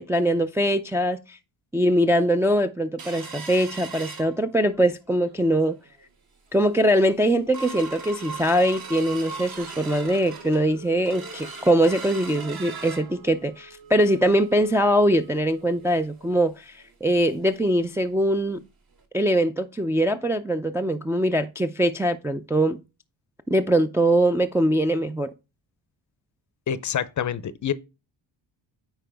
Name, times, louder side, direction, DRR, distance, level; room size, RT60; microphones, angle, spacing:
voice 1, 0.0-1.4 1.7-5.8 6.5-18.6 19.1-22.8 23.5-25.3, right 1 dB, 5° right, 0.4 m, -22 dB
sound 1, 3.0-4.9 5.3-5.4 5.7-6.0 6.5-6.6 7.0-17.5 17.8-17.9 18.3-18.5 19.0-19.1, right 4 dB, 50° right, 1.8 m, -40 dB
voice 2, 26.7-27.7, left 9 dB, 40° left, 0.6 m, -27 dB
8.9 x 4.7 x 3.4 m
cardioid pair, 110°, 46 cm